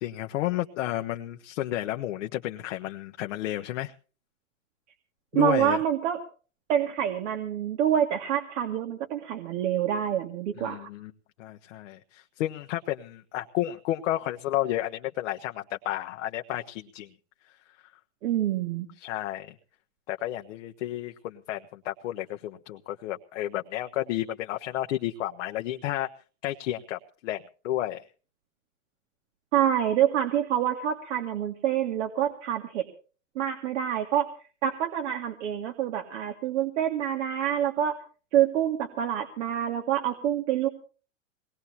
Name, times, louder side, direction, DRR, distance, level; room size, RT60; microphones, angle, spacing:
voice 1, 0.0-3.9 5.3-5.8 10.6-11.1 11.4-17.1 19.0-19.5 20.1-26.1 26.4-28.0, left 14 dB, 65° left, 5 dB, 1.1 m, -32 dB
voice 2, 5.3-6.2 6.7-10.9 18.2-18.9 29.5-32.9 33.4-34.3 34.6-37.9 38.3-40.7, right 10 dB, 65° right, 5 dB, 2.3 m, -26 dB
22.5 x 19.5 x 2.9 m, 0.38 s
hypercardioid pair, 125°, 39 cm